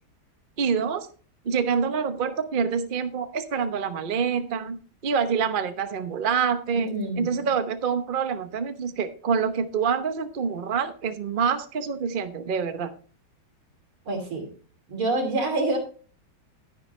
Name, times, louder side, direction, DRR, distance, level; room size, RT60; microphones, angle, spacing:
voice 1, 0.6-1.1 1.4-12.9, right 6 dB, 45° right, 8 dB, 0.7 m, -26 dB
voice 2, 6.7-7.5 14.1-14.5 14.9-15.8, right 2 dB, 85° right, 2 dB, 3.7 m, -27 dB
11.0 x 10.5 x 3.2 m, 0.40 s
omnidirectional pair, 2.2 m